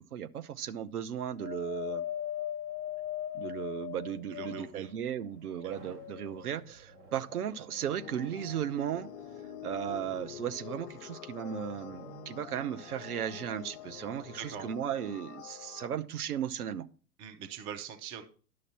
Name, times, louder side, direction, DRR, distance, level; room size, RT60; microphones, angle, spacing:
voice 1, 0.0-2.0 3.3-9.1 9.6-16.9, right 9 dB, 70° right, 0.8 m, -36 dB
Wind, 1.4-4.9 5.5-6.5 7.3-7.4, left 11 dB, 30° left, 1.2 m, -38 dB
voice 2, 4.3-4.9 5.6-5.7 14.4-14.7 17.2-18.2, right 8 dB, 15° right, 0.4 m, -42 dB
sound 1, 5.7-15.0, right 4 dB, 30° right, 1.6 m, -56 dB
sound 2, 7.9-15.9, left 11 dB, 50° left, 0.6 m, -47 dB
10.5 x 6.5 x 4.2 m
hypercardioid pair, 110°, 47 cm